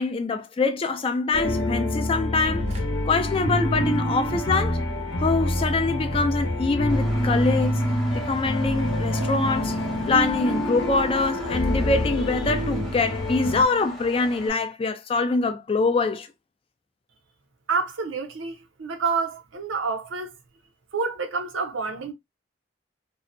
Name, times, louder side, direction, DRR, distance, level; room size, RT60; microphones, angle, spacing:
voice 1, 0.0-2.7 3.1-4.8 5.2-7.8 8.1-9.8 10.1-16.3, left 3 dB, 30° left, 0.3 m, -24 dB
sound 1, 1.3-13.6, left 1 dB, 80° left, 0.8 m, -26 dB
Fire, 2.7-2.8 4.1-13.2, right 1 dB, 35° right, 0.5 m, -43 dB
Engine, 6.9-14.5, equal, ahead, 0.7 m, -40 dB
voice 2, 17.7-20.3 20.9-22.1, right 4 dB, 85° right, 0.6 m, -28 dB
2.7 x 2.1 x 2.5 m
head